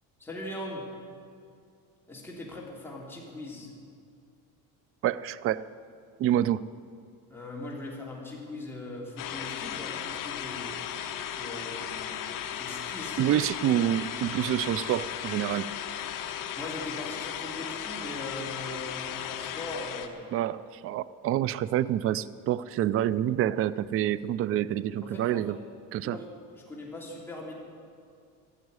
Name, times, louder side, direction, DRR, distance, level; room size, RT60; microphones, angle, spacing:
voice 1, 0.2-0.9 2.1-3.7 7.3-10.8 11.4-12.1 12.6-13.4 16.5-20.3 25.0-25.6 26.0-27.5, left 1 dB, 5° left, -4 dB, 3.1 m, -40 dB
voice 2, 5.0-5.6 6.2-6.6 13.2-15.7 20.3-25.6 25.9-26.2, right 12 dB, 35° right, 18 dB, 0.4 m, -27 dB
sound 1, 9.2-20.1, left 9 dB, 50° left, 1.1 m, -36 dB
14.5 x 7.3 x 9.6 m, 2.3 s
cardioid pair, 130°, 40 cm